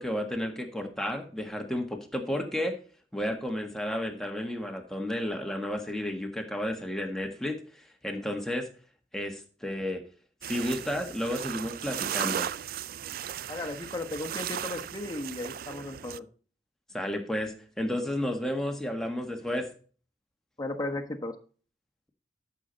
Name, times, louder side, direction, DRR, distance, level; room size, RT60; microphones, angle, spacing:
voice 1, 0.0-2.7 3.1-8.7 9.1-10.0 10.5-12.5 16.9-19.7, left 1 dB, 5° left, 3 dB, 1.6 m, -32 dB
sound 1, 10.4-16.2, right 10 dB, 55° right, 0.4 m, -36 dB
voice 2, 13.5-16.3 20.6-21.3, left 2 dB, 20° left, 4 dB, 1.3 m, -35 dB
12.5 x 6.9 x 4.1 m, 0.40 s
head